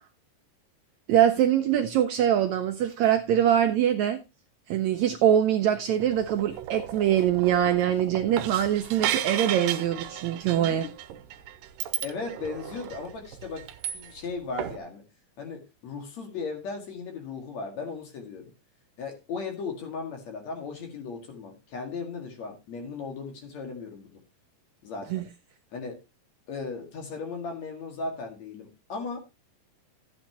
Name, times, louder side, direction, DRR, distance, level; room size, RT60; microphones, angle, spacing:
voice 1, 1.1-4.2 4.7-10.9 25.1-25.2, right 10 dB, 75° right, 1.8 m, -23 dB
sound 1, 6.0-14.3 14.6-14.8, right 12 dB, 90° right, 2.4 m, -35 dB
voice 2, 12.0-13.6 13.9-15.0 15.4-18.5 19.0-24.2 24.8-25.3 25.7-26.0 26.5-29.2, left 4 dB, 55° left, 3.2 m, -36 dB
13.5 x 8.6 x 2.9 m
omnidirectional pair, 3.9 m